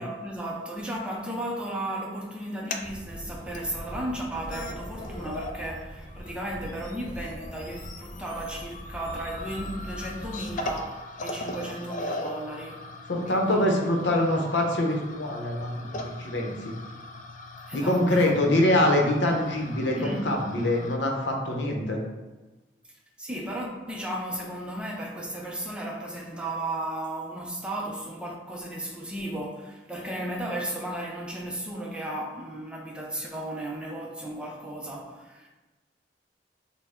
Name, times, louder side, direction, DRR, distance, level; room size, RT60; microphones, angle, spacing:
voice 1, 0.0-12.9 13.2-13.6 17.7-18.3 20.0-20.4 23.2-35.5, right 1 dB, 5° right, 0.6 m, -35 dB
sound 1, 2.4-2.9 3.5-3.6 4.2-4.3 4.5-5.7 6.0-21.0, left 2 dB, 45° left, 0.4 m, -40 dB
Motor vehicle (road), 2.8-10.7, equal, 25° right, 1.0 m, -42 dB
voice 2, 13.1-16.7 17.7-20.0 20.2-22.0, left 1 dB, 80° left, 0.8 m, -24 dB
5.4 x 2.2 x 3.6 m
head